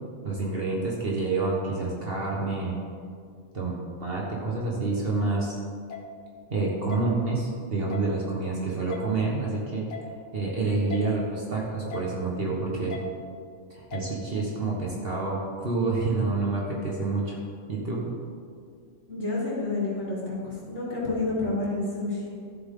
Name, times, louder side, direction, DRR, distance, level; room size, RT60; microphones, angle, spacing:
voice 1, 0.2-2.8 3.5-5.6 6.5-9.8 10.3-12.9 13.7-17.4 17.7-18.0, right 3 dB, 45° right, -3 dB, 1.5 m, -28 dB
sound 1, 5.9-6.0 6.9-7.0 7.9-8.1 8.9-9.0 9.9-10.1 10.9-11.0 11.9-12.1 12.9-13.0 13.9-14.1, left 7 dB, 75° left, 1.4 m, -38 dB
voice 2, 19.1-22.3, left 2 dB, 60° left, -7 dB, 3.4 m, -29 dB
13.0 x 7.8 x 3.7 m, 2.2 s
omnidirectional pair, 1.4 m